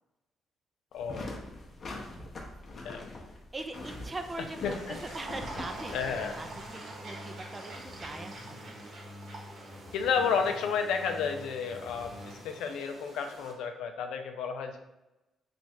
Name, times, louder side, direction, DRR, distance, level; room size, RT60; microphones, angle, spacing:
voice 1, 0.9-1.4 2.7-3.1 4.4-5.0 5.9-6.4 9.9-14.8, left 6 dB, 85° left, 6 dB, 0.4 m, -32 dB
sound 1, 0.9-6.7, left 2 dB, 40° left, 0.7 m, -43 dB
voice 2, 3.5-8.4, right 2 dB, 25° right, 6 dB, 0.4 m, -41 dB
sound 2, 3.7-13.5, right 2 dB, 55° right, 0.9 m, -47 dB
sound 3, 5.2-12.6, left 1 dB, ahead, 1.0 m, -48 dB
3.0 x 2.4 x 4.2 m, 0.98 s
cardioid pair, 90°, 0 cm